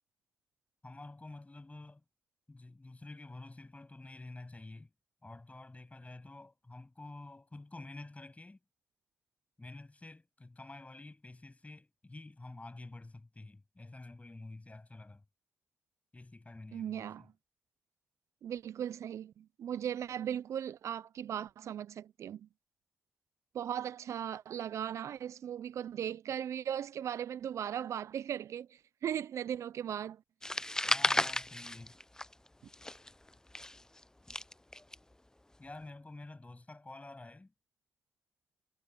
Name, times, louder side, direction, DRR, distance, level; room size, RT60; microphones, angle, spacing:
voice 1, 0.8-2.0 2.5-4.9 5.2-8.6 9.6-15.2 16.1-17.3 30.9-31.9 34.7-34.9 35.6-37.5, left 2 dB, 30° left, 7.7 m, -49 dB
voice 2, 16.7-17.3 18.4-22.5 23.5-30.2, right 9 dB, 85° right, 0.3 m, -38 dB
sound 1, 30.4-32.5 32.7-34.9, left 1 dB, 10° left, 0.4 m, -33 dB
cardioid pair, 55°, 5 cm